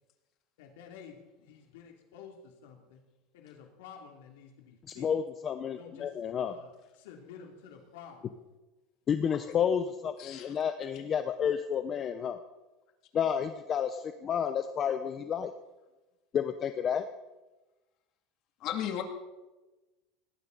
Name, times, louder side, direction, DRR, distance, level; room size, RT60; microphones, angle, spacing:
voice 1, 0.6-3.0 3.3-5.1 5.7-6.1 6.4-8.3, left 7 dB, 85° left, 3 dB, 2.7 m, -51 dB
voice 2, 5.0-6.5 9.1-12.4 13.1-15.5 16.3-17.1, left 8 dB, 30° left, 9 dB, 0.7 m, -30 dB
voice 3, 10.2-10.5 18.6-19.0, left 10 dB, 50° left, 5 dB, 2.4 m, -34 dB
18.5 x 17.5 x 4.0 m, 1.1 s
supercardioid pair, 145°, 0 cm